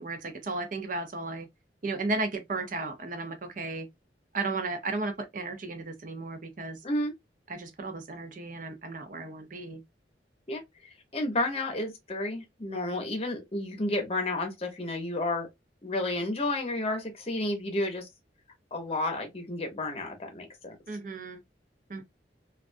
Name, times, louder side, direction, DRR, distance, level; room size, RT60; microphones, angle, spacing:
voice 1, 0.0-1.5 1.8-3.9 4.3-6.8 7.5-9.8 20.9-21.4 21.9-22.0, right 3 dB, 50° right, 0.6 m, -34 dB
voice 2, 11.1-15.5 15.8-18.1 18.7-20.8, left 2 dB, 35° left, 0.7 m, -31 dB
2.3 x 2.2 x 2.5 m
head